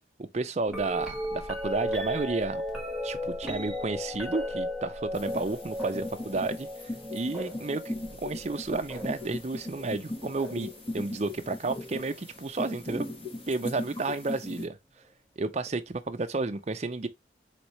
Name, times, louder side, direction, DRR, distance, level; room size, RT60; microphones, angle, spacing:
voice 1, 0.2-2.6 3.0-6.7 7.1-13.1 13.5-14.8 15.4-17.1, right 3 dB, 35° right, 0.5 m, -32 dB
sound 1, 0.7-10.8 11.7-12.1 12.9-13.9 15.7-15.8, equal, 5° right, 1.5 m, -36 dB
sound 2, 5.1-14.6, left 2 dB, 30° left, 1.3 m, -39 dB
4.1 x 3.5 x 3.1 m
head